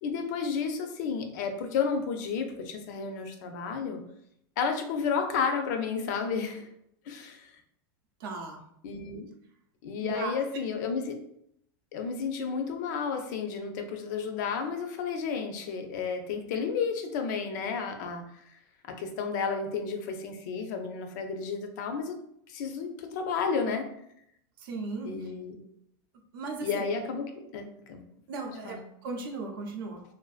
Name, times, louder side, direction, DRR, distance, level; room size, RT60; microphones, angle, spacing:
voice 1, 0.0-4.0 4.6-6.7 7.1-7.5 8.8-9.3 9.8-11.2 11.9-18.2 18.9-22.2 22.5-23.9 25.0-25.5 26.6-28.0 28.6-28.8, left 5 dB, 50° left, 6 dB, 0.4 m, -32 dB
voice 2, 8.2-8.6 10.0-10.4 24.6-25.3 26.3-26.8 28.3-30.0, right 3 dB, 65° right, 2 dB, 0.5 m, -37 dB
2.5 x 2.4 x 2.3 m, 0.74 s
supercardioid pair, 165°, 12 cm